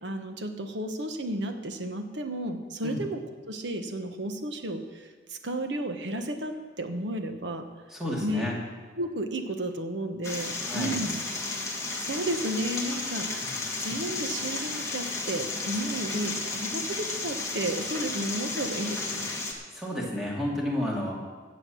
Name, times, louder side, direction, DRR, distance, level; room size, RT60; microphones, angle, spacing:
voice 1, 0.0-3.2 3.5-7.7 8.2-8.5 9.0-11.2 12.1-13.4 13.8-19.3, right 1 dB, 75° right, 6 dB, 1.2 m, -33 dB
voice 2, 7.9-8.5 10.6-11.0 13.4-13.5 19.7-21.2, left 1 dB, ahead, -4 dB, 2.4 m, -31 dB
sound 1, 10.2-19.5, left 3 dB, 15° left, 1.5 m, -33 dB
15.0 x 7.6 x 6.3 m, 1.5 s
head